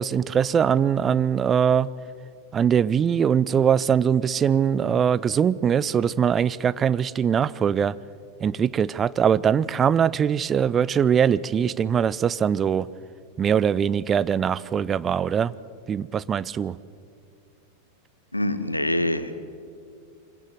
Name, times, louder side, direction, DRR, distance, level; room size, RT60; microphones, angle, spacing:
voice 1, 0.0-1.9 2.5-8.0 8.4-12.9 13.4-15.5 15.9-16.8, right 8 dB, 25° right, 19 dB, 0.4 m, -22 dB
voice 2, 18.3-19.3, left 1 dB, 85° left, 12 dB, 1.1 m, -25 dB
23.5 x 16.5 x 7.6 m, 2.3 s
figure-of-eight pair, 90°, 0 cm